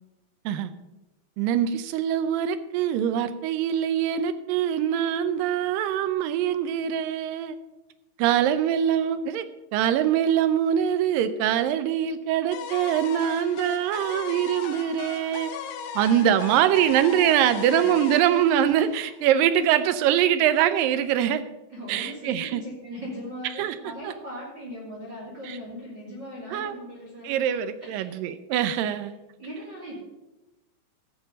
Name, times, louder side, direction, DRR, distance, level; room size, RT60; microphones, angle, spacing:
voice 1, 1.4-7.6 8.2-9.5 9.7-15.5 16.0-21.4 21.9-22.6 23.6-23.8 24.0-24.1 25.5-25.6 26.5-26.7 27.2-29.1, right 10 dB, 80° right, 11 dB, 2.4 m, -23 dB
sound 1, 12.5-19.5, left 7 dB, 80° left, 2.7 m, -37 dB
voice 2, 21.7-28.2 28.8-29.0 29.4-30.0, equal, 30° right, -6 dB, 3.2 m, -39 dB
16.5 x 6.7 x 5.3 m, 1.0 s
omnidirectional pair, 4.0 m